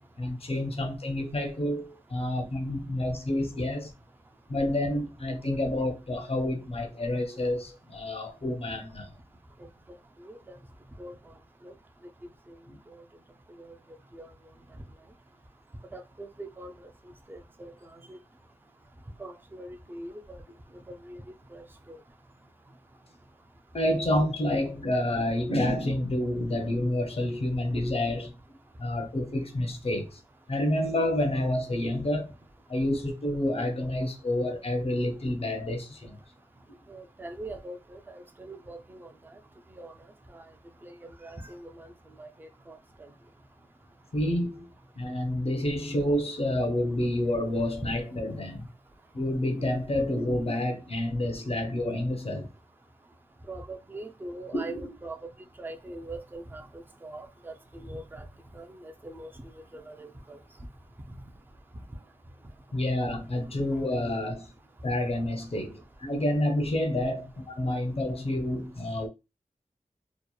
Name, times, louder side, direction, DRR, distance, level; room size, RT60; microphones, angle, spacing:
voice 1, 0.2-3.9 4.5-9.1 12.7-12.8 23.7-28.3 28.8-30.2 30.5-32.3 32.7-36.2 44.1-44.7 45.0-48.7 49.1-52.5 54.5-54.8 62.7-64.5 64.8-69.1, left 1 dB, 50° left, 0.6 m, -29 dB
voice 2, 10.2-10.6 11.0-11.2 11.6-11.7 12.9-13.0 13.6-13.7 14.1-14.3 15.9-16.9 17.3-17.7 18.1-18.2 19.2-20.4 20.9-21.2 21.5-22.0 36.9-39.1 39.8-39.9 40.3-40.4 40.8-41.9 42.2-42.8 53.5-55.2 55.6-58.3 58.5-60.4, right 2 dB, 15° right, 0.3 m, -42 dB
2.8 x 2.0 x 2.2 m
wide cardioid pair, 80°, 13 cm